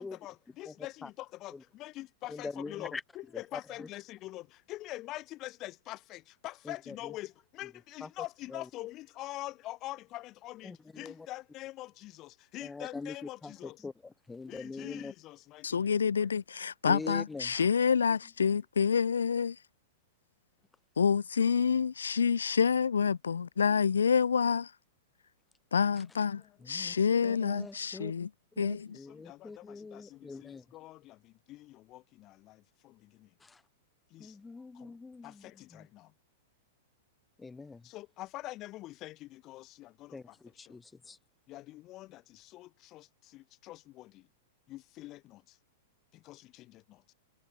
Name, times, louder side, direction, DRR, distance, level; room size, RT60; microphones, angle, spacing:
voice 1, 0.0-13.8 14.5-16.3 26.3-27.4 28.9-33.3 34.1-34.4 34.7-35.0 35.2-36.1 37.8-40.8 41.5-44.3 44.7-45.6 46.1-47.1, left 17 dB, 35° left, 1.0 m, -45 dB
voice 2, 2.3-3.0 3.5-3.9 6.7-7.1 8.0-8.1 8.5-8.7 10.6-11.3 12.6-15.1 16.8-17.7 26.6-27.0 27.2-28.1 28.6-30.7 33.4-33.6 34.2-35.9 37.4-37.9 40.1-41.2, left 4 dB, 10° left, 0.5 m, -43 dB
voice 3, 15.6-19.6 21.0-24.7 25.7-28.3 28.6-29.0, left 6 dB, 70° left, 0.9 m, -28 dB
figure-of-eight pair, 100°, 0 cm